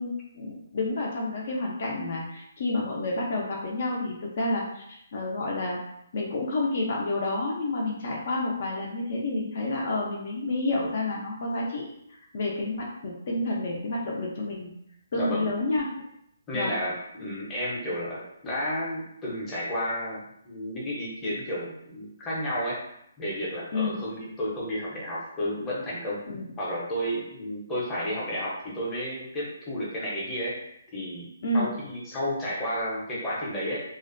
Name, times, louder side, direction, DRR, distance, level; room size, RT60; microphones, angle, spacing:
voice 1, 0.0-5.8 6.1-11.8 12.1-14.7 15.1-15.9 16.5-16.7 23.7-24.0 26.3-26.5 31.4-31.7, left 2 dB, 50° left, -2 dB, 0.5 m, -29 dB
voice 2, 15.1-15.5 16.5-22.8 23.2-26.2 26.6-30.6 30.9-31.3 31.5-33.8, equal, 15° left, -7 dB, 0.7 m, -32 dB
2.4 x 2.1 x 2.5 m, 0.76 s
hypercardioid pair, 160°, 0 cm